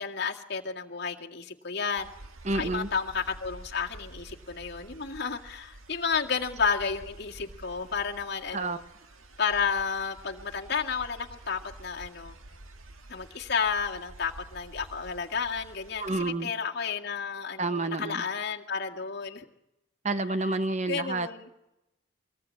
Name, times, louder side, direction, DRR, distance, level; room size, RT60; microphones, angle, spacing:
voice 1, 0.0-2.1 2.5-8.8 9.4-12.4 13.1-19.4 20.9-21.5, left 6 dB, 55° left, 0 dB, 2.0 m, -31 dB
sound 1, 2.0-16.3, right 1 dB, 90° right, 1.9 m, -49 dB
voice 2, 2.4-2.9 8.5-8.8 16.0-16.5 17.6-18.2 20.0-21.3, right 2 dB, 35° right, 11 dB, 1.1 m, -29 dB
24.0 x 18.5 x 8.5 m, 0.92 s
head